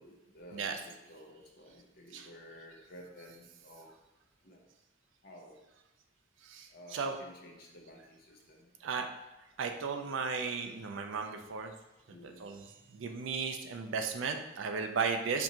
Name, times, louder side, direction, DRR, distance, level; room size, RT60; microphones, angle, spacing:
voice 1, 0.0-3.9 4.4-4.6 5.2-5.6 6.7-8.7 12.1-12.4 13.0-13.1, equal, 55° left, 0 dB, 0.7 m, -53 dB
voice 2, 6.4-7.2 8.8-9.1 9.6-11.7 12.2-15.4, right 5 dB, 75° right, 5 dB, 0.4 m, -35 dB
4.5 x 2.6 x 2.8 m, 1.0 s
head